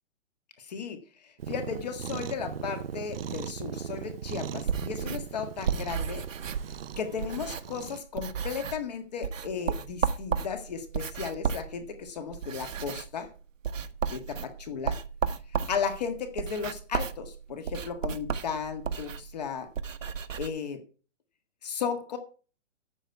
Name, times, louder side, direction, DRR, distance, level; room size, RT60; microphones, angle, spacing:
voice 1, 0.6-1.0 1.2-6.2 7.0-13.3 14.1-15.0 15.7-19.7 20.4-20.8 21.6-22.2, left 6 dB, 35° left, 7 dB, 1.7 m, -35 dB
Cat, 1.4-8.0, right 8 dB, 50° right, 0.6 m, -38 dB
sound 1, 4.6-7.9 8.1-8.9 9.2-20.5, right 7 dB, 85° right, 1.4 m, -34 dB
12.5 x 8.3 x 4.7 m, 0.36 s
hypercardioid pair, 175°, 38 cm